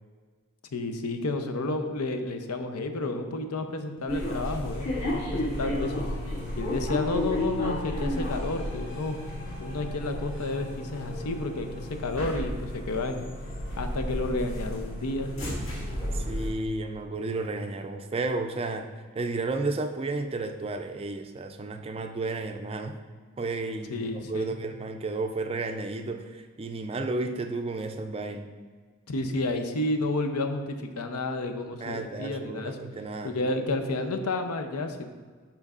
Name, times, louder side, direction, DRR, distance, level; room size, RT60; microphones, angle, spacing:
voice 1, 0.7-5.9 6.6-9.2 9.6-13.2 13.8-15.3 23.9-24.6 29.1-32.8 33.2-35.1, left 2 dB, 90° left, 6 dB, 0.6 m, -31 dB
sound 1, 4.1-16.5, left 1 dB, 65° left, 1.8 m, -32 dB
voice 2, 16.1-18.9 19.1-23.0 23.4-28.5 31.8-33.3, right 3 dB, 25° right, 6 dB, 0.3 m, -32 dB
12.0 x 4.5 x 2.4 m, 1.5 s
head